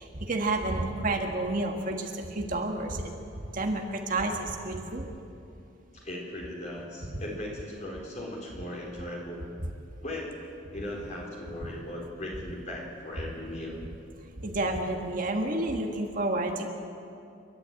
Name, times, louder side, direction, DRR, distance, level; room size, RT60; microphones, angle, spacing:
voice 1, 0.0-3.1 3.5-5.1 14.4-16.7, right 2 dB, 45° right, 2 dB, 1.7 m, -30 dB
voice 2, 5.9-9.5 10.0-13.8, left 1 dB, 40° left, -3 dB, 4.2 m, -38 dB
30.0 x 12.0 x 8.9 m, 2.6 s
head